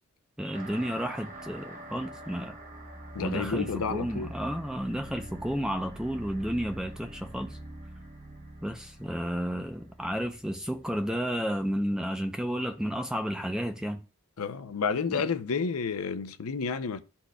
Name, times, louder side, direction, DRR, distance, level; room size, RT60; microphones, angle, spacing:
voice 1, 0.4-2.6 3.2-7.5 8.6-14.0 15.1-15.2, equal, 5° right, 0.6 m, -32 dB
sound 1, 0.5-11.5, right 1 dB, 35° right, 1.0 m, -45 dB
voice 2, 3.1-4.3 14.4-17.0, left 5 dB, 85° left, 0.6 m, -30 dB
11.5 x 4.3 x 2.3 m
head